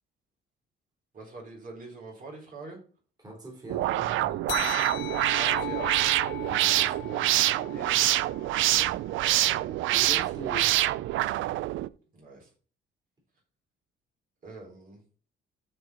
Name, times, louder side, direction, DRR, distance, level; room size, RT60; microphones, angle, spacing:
voice 1, 1.1-2.8 5.4-5.9 7.7-8.1 9.3-9.9 12.1-12.5 14.4-15.0, right 3 dB, 45° right, -1 dB, 4.4 m, -43 dB
voice 2, 3.2-4.5 6.4-7.4 8.7-8.9 9.9-10.9, right 1 dB, 20° right, -3 dB, 4.1 m, -42 dB
sound 1, 3.7-11.9, right 15 dB, 75° right, 0.4 m, -26 dB
sound 2, 4.5-9.4, left 15 dB, 65° left, 0.6 m, -39 dB
13.0 x 4.7 x 4.4 m, 0.40 s
cardioid pair, 125°, 20 cm